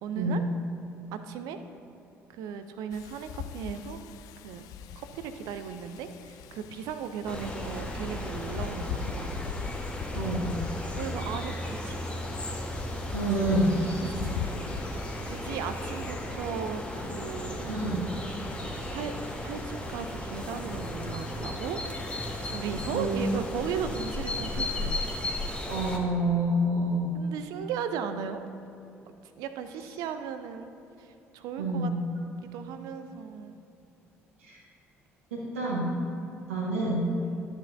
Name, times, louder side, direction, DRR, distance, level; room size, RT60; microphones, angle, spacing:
voice 1, 0.0-0.4 1.1-1.6 2.3-4.0 4.4-4.7 5.0-9.4 10.9-12.0 13.1-13.2 13.5-14.3 15.2-17.8 18.9-21.8 22.4-25.0 27.1-28.5 29.1-30.7 31.0-31.9 32.5-33.6 36.2-36.4 37.2-37.4, right 7 dB, 60° right, 9 dB, 0.5 m, -37 dB
Wind, 2.9-16.1, left 8 dB, 60° left, 0.3 m, -40 dB
sound 1, 7.3-26.0, left 1 dB, 15° left, 1.2 m, -35 dB
voice 2, 10.1-10.5 13.1-14.1 17.7-18.1 22.9-23.2 25.7-27.1 31.6-32.0 34.4-34.6 35.3-35.9 36.5-37.1, right 1 dB, 75° right, -4 dB, 1.3 m, -27 dB
12.0 x 7.9 x 2.6 m, 2.8 s
figure-of-eight pair, 50°, 7 cm